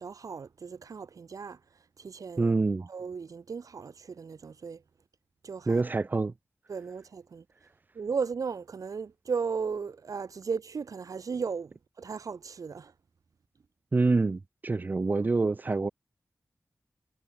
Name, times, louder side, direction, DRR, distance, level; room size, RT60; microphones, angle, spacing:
voice 1, 0.0-1.6 2.0-2.5 2.9-4.8 5.4-5.8 6.7-7.4 7.9-12.9, right 5 dB, 70° right, 0.6 m, -36 dB
voice 2, 2.4-2.9 5.7-6.3 13.9-15.9, right 3 dB, 30° right, 0.3 m, -26 dB
cardioid pair, 55°, 6 cm